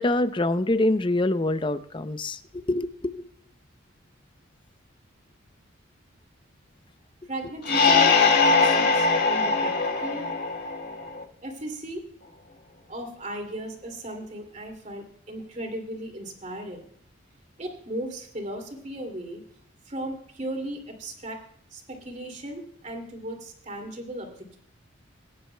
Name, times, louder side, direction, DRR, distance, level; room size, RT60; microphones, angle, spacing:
voice 1, 0.0-3.3, left 1 dB, 25° left, 12 dB, 0.5 m, -25 dB
voice 2, 7.3-9.7 10.0-10.3 11.4-12.0 12.9-16.9 17.6-19.4 19.9-21.4 21.7-24.3, right 1 dB, 35° right, 3 dB, 2.5 m, -36 dB
sound 1, 7.6-11.2, left 4 dB, 50° left, 1.9 m, -21 dB
22.0 x 10.5 x 2.2 m, 0.65 s
head